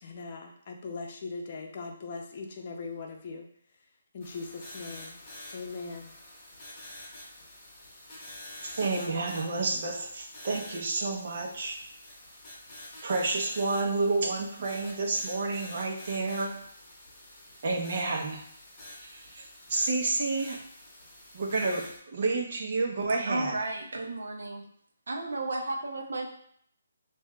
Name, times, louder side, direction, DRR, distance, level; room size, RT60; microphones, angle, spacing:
voice 1, 0.0-3.5 4.1-5.2 5.5-6.2, left 4 dB, 40° left, 2 dB, 0.7 m, -40 dB
sound 1, 4.2-22.0, left 1 dB, 20° left, 1.6 m, -48 dB
voice 2, 8.6-11.8 13.0-16.6 17.6-18.4 19.0-20.6 21.3-23.6, right 3 dB, 50° right, 0 dB, 1.0 m, -30 dB
voice 3, 23.3-24.6 25.1-26.3, right 2 dB, 75° right, 0 dB, 0.8 m, -33 dB
6.2 x 2.6 x 2.4 m, 0.65 s
hypercardioid pair, 160°, 0 cm